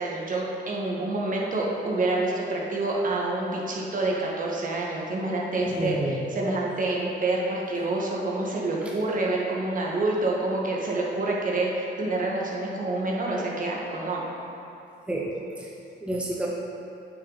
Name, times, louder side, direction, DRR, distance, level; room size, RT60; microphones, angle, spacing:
voice 1, 0.0-6.0 6.3-14.2, right 2 dB, 45° right, -3 dB, 1.6 m, -27 dB
voice 2, 5.6-6.3 15.1-15.7 16.0-16.5, right 1 dB, 5° right, -3 dB, 0.9 m, -30 dB
8.2 x 6.3 x 4.1 m, 2.7 s
cardioid pair, 90°, 20 cm